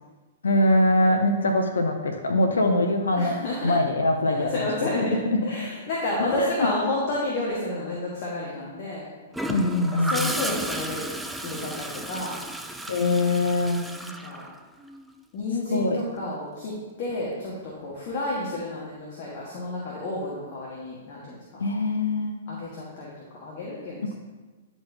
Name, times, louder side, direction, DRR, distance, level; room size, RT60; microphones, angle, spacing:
voice 1, 0.4-3.4 3.6-4.5 5.3-5.4 6.2-6.7 9.5-10.3 12.9-13.8 15.7-16.0 21.6-22.4 24.0-24.1, left 2 dB, 75° left, 4 dB, 0.6 m, -23 dB
voice 2, 3.1-3.7 4.3-9.1 10.1-11.0 11.4-12.4 14.0-14.5 15.3-21.6 22.5-24.1, left 2 dB, 45° left, -5 dB, 1.5 m, -31 dB
Gurgling / Toilet flush, 9.3-15.1 17.1-17.3, right 1 dB, 5° right, 0.4 m, -33 dB
10.0 x 4.5 x 2.7 m, 1.3 s
figure-of-eight pair, 110°, 0 cm